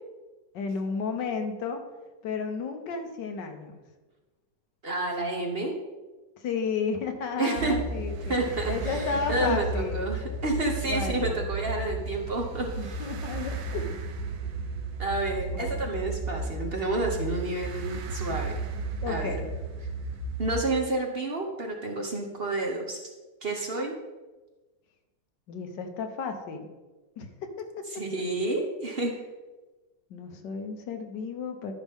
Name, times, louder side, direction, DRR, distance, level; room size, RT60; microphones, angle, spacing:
voice 1, 0.5-1.8 2.2-3.8 6.4-8.4 8.7-10.0 10.8-11.4 12.7-14.0 15.4-15.8 19.0-19.5 25.5-26.7 27.2-28.0 30.1-31.7, left 5 dB, 90° left, 5 dB, 1.6 m, -33 dB
voice 2, 4.8-5.7 7.4-7.8 8.3-13.0 15.0-18.5 19.1-19.4 20.4-23.1 23.4-23.9 27.9-29.1, right 2 dB, 40° right, 1 dB, 1.0 m, -30 dB
sound 1, 7.6-20.7, right 3 dB, 85° right, 1.5 m, -34 dB
12.5 x 5.8 x 3.6 m, 1.2 s
omnidirectional pair, 1.8 m